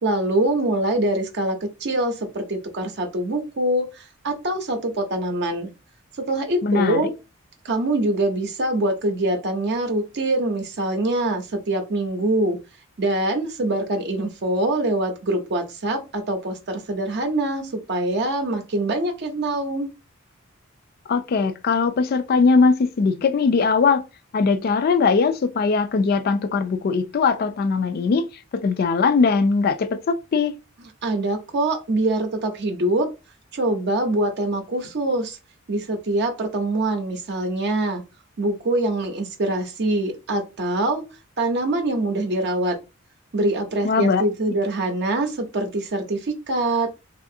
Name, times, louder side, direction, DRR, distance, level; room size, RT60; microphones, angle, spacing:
voice 1, 0.0-5.7 6.3-7.1 7.6-12.6 13.0-19.9 31.0-33.1 33.5-35.4 35.7-38.0 38.4-41.0 41.4-42.8 43.3-46.9, right 1 dB, 55° right, 0.6 m, -24 dB
voice 2, 6.6-7.0 21.1-24.0 24.3-28.2 28.5-30.5 43.8-44.2, left 4 dB, 50° left, 0.3 m, -20 dB
3.2 x 2.4 x 2.6 m
head